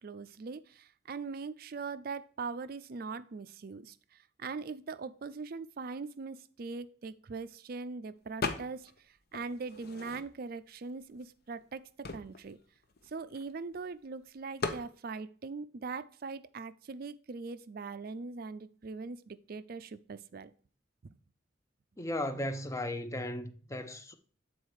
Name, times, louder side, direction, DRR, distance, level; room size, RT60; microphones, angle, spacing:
voice 1, 0.0-12.6 13.0-20.5, right 4 dB, 50° right, 0.4 m, -41 dB
sound 1, 8.4-9.0 9.3-10.6 11.2-11.3 11.5-13.8 14.6-14.9, left 4 dB, 55° left, 0.8 m, -38 dB
voice 2, 22.0-24.1, left 1 dB, 15° left, 0.6 m, -36 dB
8.2 x 4.3 x 4.7 m
head